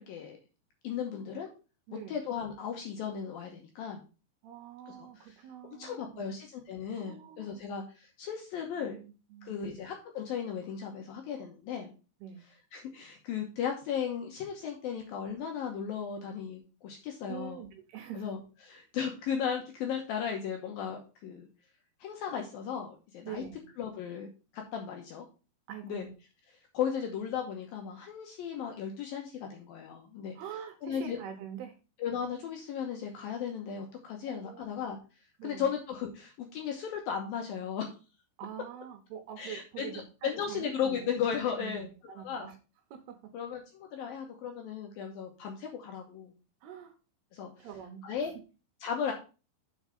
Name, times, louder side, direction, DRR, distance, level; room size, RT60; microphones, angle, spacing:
voice 1, 0.1-0.4 0.8-1.5 1.9-4.0 4.9-5.0 5.8-9.0 9.4-11.9 12.7-17.6 18.1-21.5 22.0-23.4 23.8-24.3 24.5-25.3 25.8-26.1 26.7-30.4 30.8-31.2 32.0-35.0 35.4-37.9 39.4-41.9 42.2-42.5 43.3-46.3 47.3-47.7 48.0-48.3 48.8-49.1, left 7 dB, 75° left, 2 dB, 2.3 m, -36 dB
voice 2, 1.9-2.2 4.4-6.4 7.0-7.6 8.8-9.8 12.2-12.4 17.3-18.3 23.2-23.7 25.7-26.1 30.4-31.8 34.3-35.0 35.4-35.7 38.4-41.2 41.6-42.6 42.9-43.3 46.6-47.0 47.6-48.1, right 9 dB, 75° right, 6 dB, 2.7 m, -45 dB
7.1 x 4.7 x 5.2 m, 0.33 s
omnidirectional pair, 5.2 m